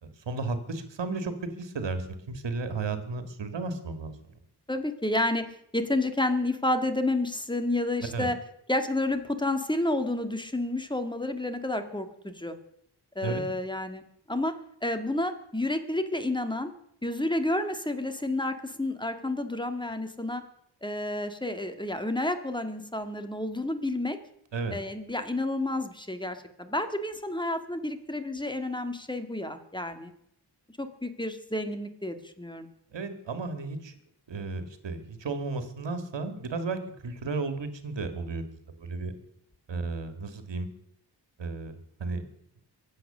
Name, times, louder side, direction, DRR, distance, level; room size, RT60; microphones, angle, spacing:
voice 1, 0.0-4.1 8.1-8.3 13.2-13.4 24.5-24.8 32.9-34.0 34.3-38.5 38.8-39.1 39.7-40.7 41.4-42.2, right 3 dB, 85° right, 9 dB, 1.9 m, -34 dB
voice 2, 4.7-5.5 5.7-8.4 8.7-12.6 13.2-14.0 14.3-14.5 14.8-16.7 17.0-20.4 20.8-24.2 24.7-30.1 30.8-32.7, left 1 dB, 10° left, 8 dB, 1.9 m, -30 dB
23.0 x 8.0 x 6.7 m, 0.72 s
wide cardioid pair, 75°, 42 cm